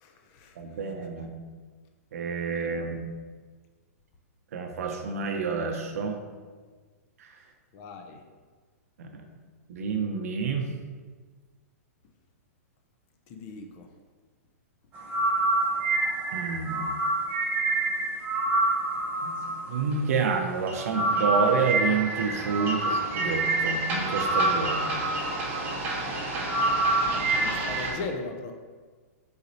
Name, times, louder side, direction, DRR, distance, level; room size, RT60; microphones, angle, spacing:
voice 1, 0.0-0.5 7.7-8.2 13.3-13.9 27.1-28.5, left 3 dB, 35° left, 4 dB, 0.4 m, -38 dB
voice 2, 0.6-1.3 2.1-3.0 4.5-6.2 7.2-7.3 9.0-9.1 9.7-10.7 16.3-16.9 19.2-19.4 19.7-25.0, right 5 dB, 70° right, 4 dB, 0.6 m, -29 dB
sound 1, 14.9-27.9, right 2 dB, 20° right, 0.7 m, -27 dB
4.1 x 4.0 x 2.7 m, 1.5 s
hypercardioid pair, 145°, 9 cm